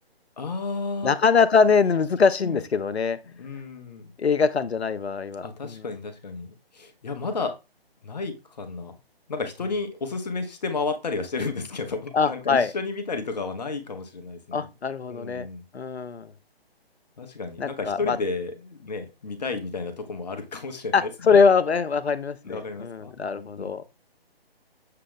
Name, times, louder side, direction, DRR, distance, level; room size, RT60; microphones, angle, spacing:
voice 1, 0.4-1.1 2.4-2.6 3.3-4.1 5.4-7.5 8.0-8.9 9.3-14.7 15.1-15.6 17.2-21.1 22.4-23.7, left 4 dB, 45° left, 0.7 m, -32 dB
voice 2, 1.0-3.2 4.2-5.9 12.1-12.7 14.5-15.5 15.7-16.3 17.6-18.2 20.9-23.9, left 5 dB, 90° left, 0.5 m, -22 dB
6.6 x 2.2 x 3.6 m
figure-of-eight pair, 145°, 31 cm